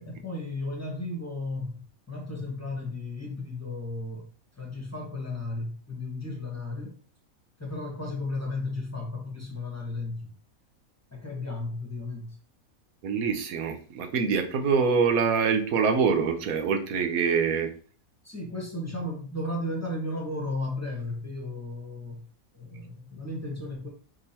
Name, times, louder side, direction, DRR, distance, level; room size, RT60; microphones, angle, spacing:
voice 1, 0.0-4.3 4.5-7.0 7.6-10.3 11.1-12.4 18.2-22.2 22.5-23.9, left 2 dB, 10° left, -1 dB, 1.2 m, -34 dB
voice 2, 13.0-17.7, right 5 dB, 75° right, 6 dB, 1.2 m, -25 dB
4.8 x 3.6 x 2.8 m, 0.41 s
omnidirectional pair, 1.5 m